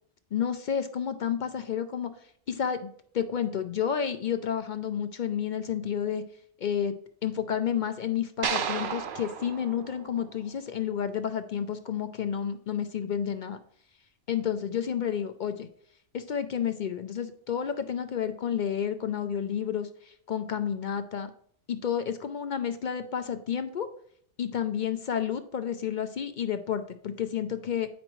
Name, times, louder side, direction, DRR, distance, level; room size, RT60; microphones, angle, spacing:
voice 1, 0.3-2.1 2.5-2.9 3.1-6.2 6.6-6.9 7.2-13.6 14.3-15.7 16.1-21.3 21.7-23.9 24.4-27.9, left 8 dB, 60° left, 9 dB, 0.5 m, -30 dB
sound 1, 8.4-10.8, right 7 dB, 55° right, 0.7 m, -33 dB
8.8 x 5.1 x 3.1 m, 0.62 s
omnidirectional pair, 1.2 m